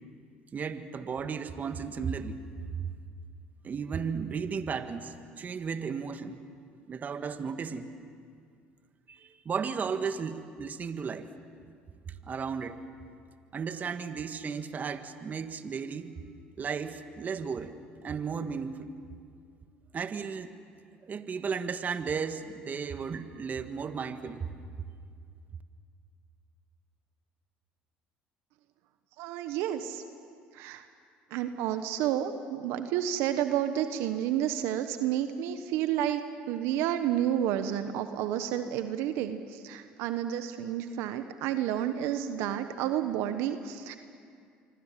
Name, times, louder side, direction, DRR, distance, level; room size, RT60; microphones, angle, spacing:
voice 1, 0.5-2.9 3.6-6.4 6.9-7.9 9.1-11.3 12.1-12.8 13.5-16.1 16.6-17.8 18.0-18.9 19.9-20.5 21.0-24.5, right 6 dB, 40° right, 9 dB, 1.7 m, -34 dB
voice 2, 29.2-30.0 30.5-30.8 31.3-36.2 36.5-43.9, right 10 dB, 75° right, 9 dB, 1.2 m, -30 dB
27.0 x 24.5 x 7.6 m, 2.2 s
hypercardioid pair, 75°, 4 cm